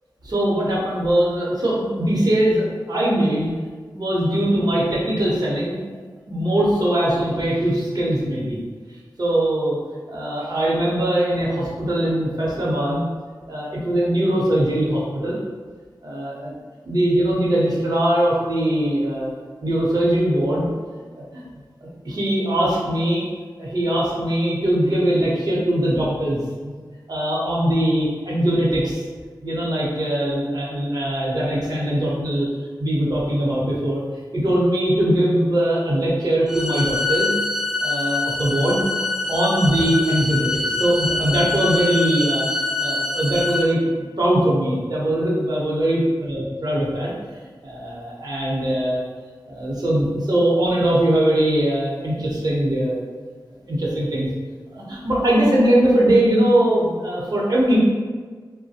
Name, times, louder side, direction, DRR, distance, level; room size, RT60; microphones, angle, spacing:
voice 1, 0.2-3.5 3.9-5.8 6.3-8.6 9.2-9.8 10.1-13.0 13.5-15.4 16.0-16.5 16.8-19.3 19.6-20.7 21.3-21.4 21.8-23.3 23.6-26.7 27.1-29.0 29.4-32.5 32.8-34.0 34.3-37.3 37.8-38.8 39.3-47.1 47.6-49.0 49.5-53.0 53.7-54.3 54.7-57.8, right 1 dB, 55° right, -5 dB, 0.8 m, -21 dB
sound 1, 36.5-43.6, left 2 dB, 5° right, 0.5 m, -25 dB
3.1 x 2.1 x 2.7 m, 1.5 s
wide cardioid pair, 75°, 8 cm